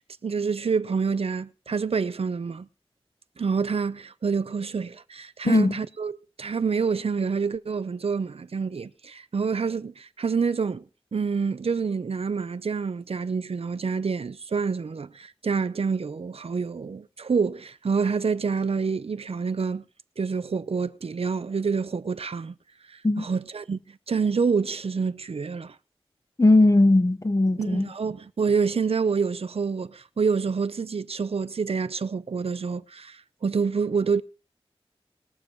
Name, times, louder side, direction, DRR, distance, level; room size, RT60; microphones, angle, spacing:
voice 1, 0.2-2.7 3.4-10.8 11.1-19.8 20.2-22.5 22.9-23.8 24.1-25.7 27.6-34.2, right 5 dB, 80° right, 0.7 m, -27 dB
voice 2, 26.4-27.9, left 2 dB, 35° left, 1.0 m, -19 dB
21.5 x 7.1 x 4.7 m
wide cardioid pair, 70°, 10 cm